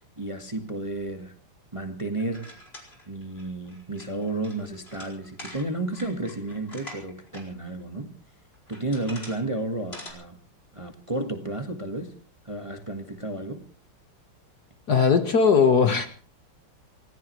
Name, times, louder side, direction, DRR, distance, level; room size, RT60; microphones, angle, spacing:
voice 1, 0.0-1.4 1.7-2.5 3.1-8.1 8.7-10.4 10.7-12.2 12.4-13.6, right 2 dB, 15° right, 1.5 m, -32 dB
sound 1, 2.2-7.4 7.8-7.9 8.5-9.4 9.7-10.1, left 1 dB, 25° left, 4.9 m, -44 dB
voice 2, 14.9-16.1, left 5 dB, 50° left, 1.8 m, -19 dB
28.0 x 15.5 x 3.2 m
omnidirectional pair, 2.4 m